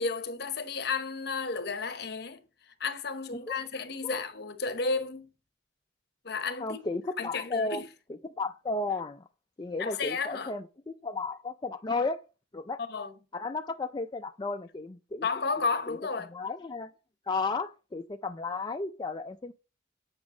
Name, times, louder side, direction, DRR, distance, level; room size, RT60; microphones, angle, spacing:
voice 1, 0.0-2.4 2.8-5.3 6.2-6.8 7.2-7.8 9.8-10.5 12.9-13.1 15.2-16.3, left 4 dB, 60° left, 1.0 m, -32 dB
voice 2, 6.6-7.8 8.2-9.3 9.6-12.2 12.5-12.8 13.3-15.3 15.6-16.0 16.3-16.9 17.3-19.5, left 3 dB, 25° left, 0.4 m, -34 dB
9.0 x 6.2 x 3.8 m
head